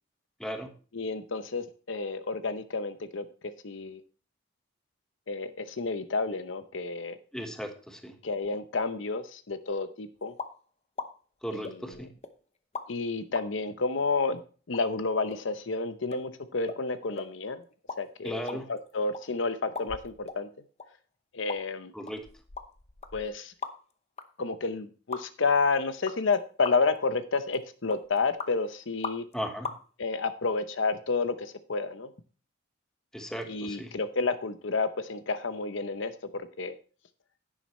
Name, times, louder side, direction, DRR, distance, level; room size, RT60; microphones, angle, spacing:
voice 1, 0.9-3.2 3.6-4.0 5.3-7.2 8.2-10.3 11.5-12.1 12.9-14.4 14.7-17.6 18.0-20.5 21.3-21.9 23.1-23.5 24.4-29.2 30.0-32.1 33.4-36.8, left 4 dB, 70° left, 10 dB, 0.8 m, -30 dB
voice 2, 7.3-8.1 11.4-12.1 18.2-18.7 21.9-22.2 29.3-29.7 33.1-33.9, equal, 5° left, 4 dB, 1.2 m, -36 dB
sound 1, 10.4-10.6 11.0-11.1 11.6-12.3 12.7-12.9 13.4-13.5 14.1-14.2 14.7-14.8 15.3-15.4 15.7-15.8 16.1-16.2 16.7-16.8 17.2-17.3 17.7-18.0 18.3-19.2 19.8-20.4 20.8-20.9 21.5-21.6 22.1-23.9 24.2-24.3 25.1-25.2 26.1-26.3 26.6-27.0 27.3-27.6 27.9-28.5 29.0-29.3 29.6-29.8, left 4 dB, 35° left, 0.8 m, -38 dB
10.5 x 9.2 x 3.1 m, 0.39 s
head